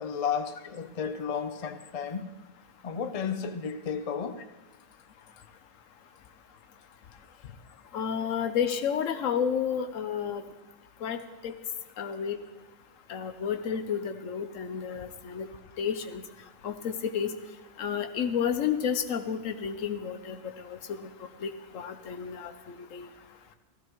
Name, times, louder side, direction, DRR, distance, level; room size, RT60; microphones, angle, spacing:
voice 1, 0.0-2.3 2.8-4.4, left 6 dB, 40° left, 0.5 m, -33 dB
voice 2, 7.9-10.4 11.0-11.2 11.4-11.5 12.0-12.4 13.1-15.5 15.8-16.2 16.6-17.3 17.8-20.4 20.7-21.1 21.4-23.1, left 7 dB, 80° left, 1.2 m, -31 dB
16.5 x 14.5 x 3.1 m
omnidirectional pair, 1.3 m